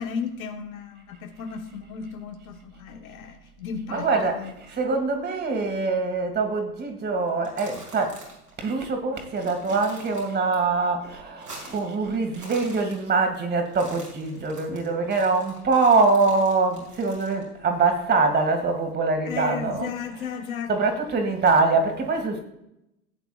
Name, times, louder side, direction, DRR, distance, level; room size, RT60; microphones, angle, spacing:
voice 1, 0.0-4.5 19.3-20.7, left 6 dB, 60° left, 5 dB, 1.4 m, -34 dB
voice 2, 3.9-8.2 8.6-19.9 20.7-22.4, right 3 dB, 20° right, 5 dB, 2.1 m, -24 dB
sound 1, 7.3-8.5 8.8-8.9 9.2-10.6 10.9-11.9 12.2-13.4 13.7-17.4, right 2 dB, 85° right, 4.6 m, -45 dB
16.5 x 9.1 x 2.4 m, 0.83 s
figure-of-eight pair, 90°, 46 cm